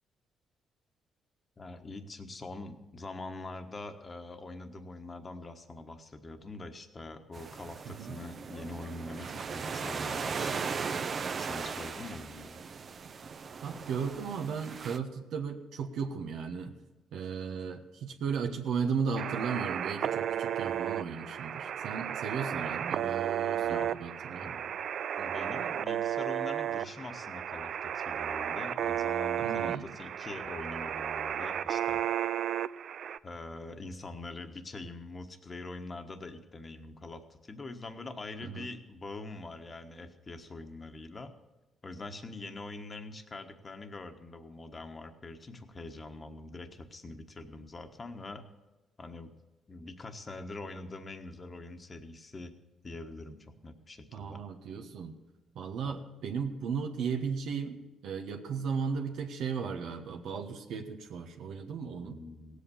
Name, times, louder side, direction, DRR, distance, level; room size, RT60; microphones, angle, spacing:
voice 1, 1.6-10.8 11.4-12.6 23.6-23.9 24.4-24.8 25.2-32.0 33.2-41.3 41.8-48.4 49.0-49.3 49.7-52.5 52.8-54.4 55.8-55.9 62.0-62.6, left 2 dB, 30° left, 6 dB, 1.3 m, -44 dB
sound 1, 7.3-15.0, right 5 dB, 45° right, 0.8 m, -38 dB
voice 2, 7.8-8.2 13.6-16.7 17.1-24.5 29.4-29.8 38.4-38.7 54.1-55.1 55.5-57.8 58.0-62.2, right 6 dB, 80° right, 4 dB, 1.3 m, -35 dB
sound 2, 19.2-33.2, right 10 dB, 65° right, 0.4 m, -33 dB
17.0 x 8.3 x 7.0 m, 1.1 s
cardioid pair, 90°, 0 cm